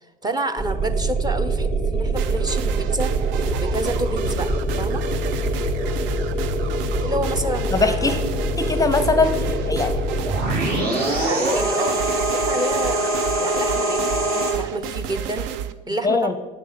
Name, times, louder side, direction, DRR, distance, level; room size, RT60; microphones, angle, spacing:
voice 1, 0.2-3.1 3.6-4.5 4.7-5.0 7.0-8.2 10.8-13.1 13.4-14.2 14.6-15.5 15.9-16.3, right 1 dB, 20° right, 8 dB, 0.8 m, -28 dB
sound 1, 0.6-14.5, right 1 dB, 45° right, 2.4 m, -24 dB
sound 2, 2.2-15.7, right 9 dB, 65° right, 0.6 m, -32 dB
voice 2, 7.7-8.2 8.6-10.1 16.0-16.3, left 3 dB, 15° left, 9 dB, 0.7 m, -21 dB
8.6 x 6.4 x 5.8 m, 1.2 s
hypercardioid pair, 75°, 21 cm